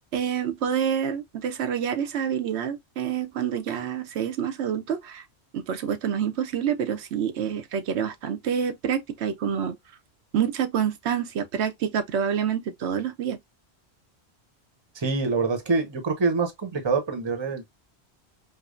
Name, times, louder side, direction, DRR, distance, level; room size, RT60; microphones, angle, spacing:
voice 1, 0.1-5.2 5.5-9.8 10.3-13.4, right 8 dB, 90° right, 1.0 m, -27 dB
voice 2, 14.9-17.7, right 4 dB, 25° right, 0.8 m, -25 dB
4.9 x 2.1 x 2.4 m
omnidirectional pair, 1.1 m